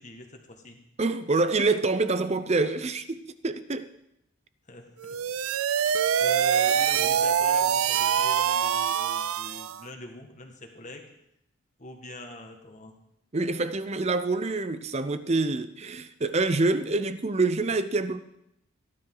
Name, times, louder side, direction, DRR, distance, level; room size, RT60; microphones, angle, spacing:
voice 1, 0.0-0.8 4.6-5.2 5.7-11.0 11.8-13.0, left 1 dB, 35° left, 1.8 m, -43 dB
voice 2, 1.0-3.9 13.3-18.2, right 3 dB, 30° right, 0.6 m, -26 dB
sound 1, 5.0-9.8, right 8 dB, 85° right, 0.4 m, -24 dB
17.0 x 11.0 x 3.9 m
head